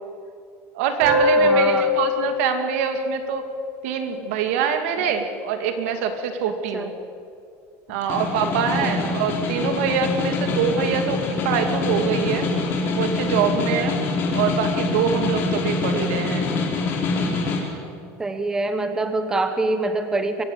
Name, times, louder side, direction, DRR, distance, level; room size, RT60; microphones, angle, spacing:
voice 1, 0.7-3.4 3.8-7.0 7.9-12.4 12.9-14.0 14.3-16.5, right 7 dB, 75° right, 7 dB, 2.4 m, -24 dB
sound 1, 1.0-4.2, left 4 dB, 45° right, 6.0 m, -24 dB
voice 2, 1.4-1.9 5.0-5.1 6.5-6.9 8.4-8.5 8.8-9.2 17.3-17.4 18.2-20.4, right 2 dB, 10° right, 8 dB, 0.9 m, -26 dB
Snare drum, 7.9-17.7, left 3 dB, 30° left, 3.5 m, -25 dB
23.5 x 15.5 x 8.6 m, 2.4 s
cardioid pair, 175°, 7 cm